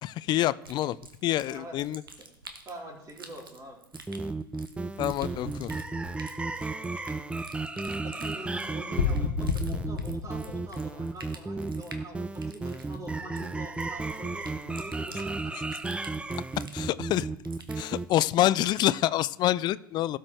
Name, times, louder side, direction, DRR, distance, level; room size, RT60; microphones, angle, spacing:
voice 1, 0.0-1.0 1.2-2.0 5.0-5.7 16.7-17.3 17.8-20.2, left 14 dB, 40° left, 19 dB, 0.4 m, -26 dB
sound 1, 0.6-18.9, right 3 dB, 90° right, 1.1 m, -50 dB
voice 2, 1.5-1.8 2.7-3.8 8.0-15.7, right 1 dB, 30° right, -2 dB, 3.7 m, -44 dB
sound 2, 3.9-18.1, right 3 dB, 10° right, 0.5 m, -34 dB
sound 3, 5.1-6.5 9.0-11.5, left 5 dB, 75° left, 0.9 m, -31 dB
16.5 x 6.4 x 3.3 m, 0.80 s
figure-of-eight pair, 75°, 11 cm